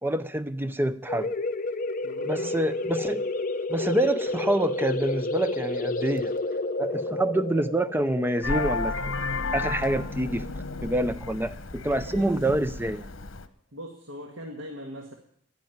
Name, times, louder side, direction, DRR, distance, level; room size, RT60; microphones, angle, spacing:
voice 1, 0.0-1.3 2.2-3.2 3.7-6.3 6.8-9.1 9.5-10.5 10.8-13.1, right 1 dB, 10° right, 0.5 m, -27 dB
sound 1, 1.1-10.4, left 2 dB, 45° left, 0.7 m, -31 dB
voice 2, 2.0-2.7 12.1-12.5 13.7-15.1, equal, 75° right, 1.7 m, -40 dB
Vehicle horn car horn honking, 8.4-13.5, left 3 dB, 80° left, 1.0 m, -32 dB
11.5 x 10.5 x 9.2 m
head